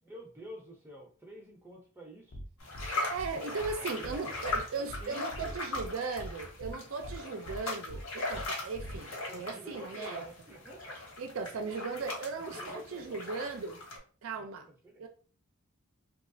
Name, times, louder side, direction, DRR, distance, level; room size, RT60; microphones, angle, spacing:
voice 1, 0.0-2.4 3.4-3.6 4.0-4.2 4.8-5.6 9.3-11.0 12.4-13.2 14.3-15.1, right 1 dB, 10° right, 0.6 m, -49 dB
sound 1, 2.3-2.4 2.7-2.9 3.2-3.3 3.6-3.7 4.0-4.2 4.5-4.6 4.9-5.0 5.3-5.9 6.2-6.3 6.6-6.7 7.0-7.2 7.5-7.6 7.9-8.0 8.3-8.4 8.7-9.0, equal, 55° left, 0.5 m, -42 dB
sound 2, 2.6-14.0, left 2 dB, 70° left, 1.1 m, -39 dB
voice 2, 3.1-10.3 11.2-13.8 14.2-14.7 15.0-15.1, right 4 dB, 75° right, 0.4 m, -37 dB
2.9 x 2.3 x 2.6 m
head